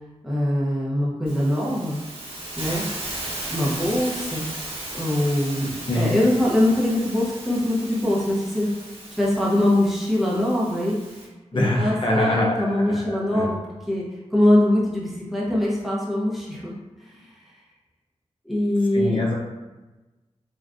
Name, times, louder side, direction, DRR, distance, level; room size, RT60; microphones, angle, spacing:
voice 1, 0.2-2.0 2.6-2.8 3.5-4.5 4.9-8.7 9.2-11.0 11.5-13.6 13.9-14.1 14.3-16.7 17.0-17.3 18.4-19.2, left 1 dB, ahead, -6 dB, 0.7 m, -22 dB
Hiss, 1.3-11.3, right 1 dB, 50° right, 0.9 m, -36 dB
voice 2, 11.5-13.5 18.9-19.4, left 1 dB, 45° left, -2 dB, 0.6 m, -24 dB
3.3 x 2.4 x 2.4 m, 1.1 s
wide cardioid pair, 70°, 12 cm